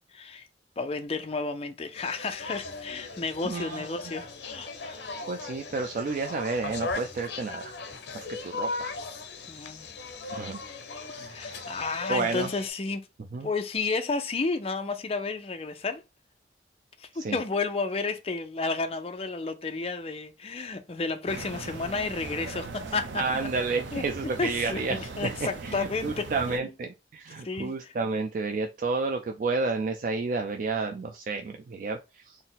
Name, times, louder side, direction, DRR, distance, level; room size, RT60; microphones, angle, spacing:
voice 1, 0.1-0.5 0.8-5.1 9.5-9.9 11.3-13.1 13.4-16.0 17.0-23.2 23.9-24.0 24.4-26.6 27.4-27.9, left 4 dB, 35° left, 0.5 m, -32 dB
sound 1, 1.9-12.7, left 3 dB, 75° left, 0.7 m, -38 dB
voice 2, 3.4-3.9 5.3-7.7 8.1-8.9 10.3-10.6 11.0-11.8 12.1-12.5 13.3-13.5 17.2-17.4 23.2-32.4, right 4 dB, 50° right, 0.4 m, -31 dB
sound 2, 21.3-26.6, right 3 dB, 85° right, 0.6 m, -39 dB
4.1 x 2.1 x 4.0 m
head